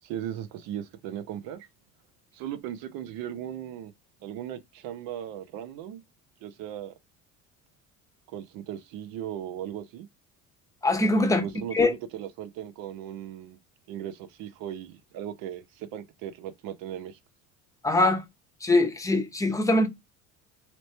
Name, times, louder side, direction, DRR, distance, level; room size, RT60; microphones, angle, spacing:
voice 1, 0.0-1.7 2.3-3.9 4.2-6.0 6.4-6.9 8.3-10.1 11.2-13.6 13.9-17.2, right 10 dB, 70° right, 0.8 m, -37 dB
voice 2, 10.8-11.4 11.7-11.9 17.8-18.2 18.6-19.9, left 2 dB, 10° left, 0.8 m, -22 dB
3.1 x 3.0 x 3.1 m
supercardioid pair, 105°, 35 cm